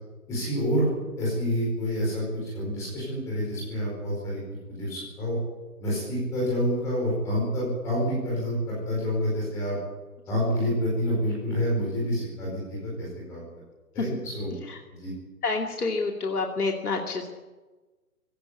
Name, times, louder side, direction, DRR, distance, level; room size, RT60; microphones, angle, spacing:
voice 1, 0.3-0.9 1.2-4.4 4.7-5.4 5.8-9.8 10.3-13.4 13.9-14.5 14.9-15.1, equal, 5° left, -5 dB, 4.8 m, -28 dB
voice 2, 15.4-17.3, left 3 dB, 70° left, 2 dB, 2.7 m, -28 dB
19.5 x 17.5 x 8.3 m, 1.2 s
hypercardioid pair, 175°, 47 cm